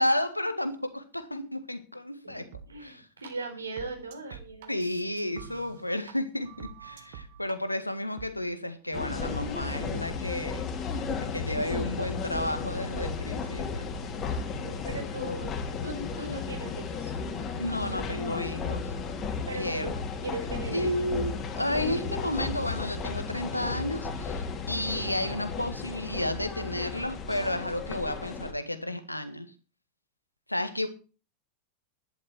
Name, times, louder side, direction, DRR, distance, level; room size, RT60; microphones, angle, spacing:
voice 1, 0.0-2.4 2.8-3.1 4.7-13.9 17.6-18.9 19.5-19.9 20.7-29.5 30.5-30.9, left 1 dB, 85° left, 10 dB, 1.7 m, -32 dB
voice 2, 2.2-4.8 14.6-15.5 15.8-17.1 19.5-19.9 20.2-21.0, right 2 dB, 75° right, 4 dB, 4.7 m, -38 dB
sound 1, 2.5-2.7 3.2-3.3 3.8-6.1 6.4-7.6 8.2-8.3, right 9 dB, 55° right, 2.1 m, -46 dB
sound 2, 8.9-28.5, left 5 dB, 30° left, 2.9 m, -34 dB
12.0 x 11.0 x 4.6 m, 0.35 s
figure-of-eight pair, 90°, 0 cm